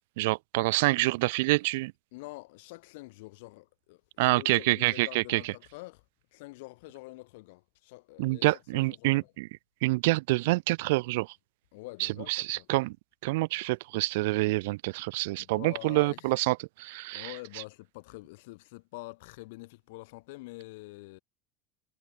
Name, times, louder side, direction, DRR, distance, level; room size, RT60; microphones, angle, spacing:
voice 1, 0.2-1.9 4.2-5.5 8.2-9.5 9.8-11.3 12.0-13.0 13.2-17.6, right 22 dB, 75° right, 0.7 m, -27 dB
voice 2, 2.1-6.0 6.3-9.3 11.7-12.7 15.4-16.3 17.1-21.2, left 23 dB, 70° left, 4.6 m, -46 dB
cardioid pair, 175°, 0 cm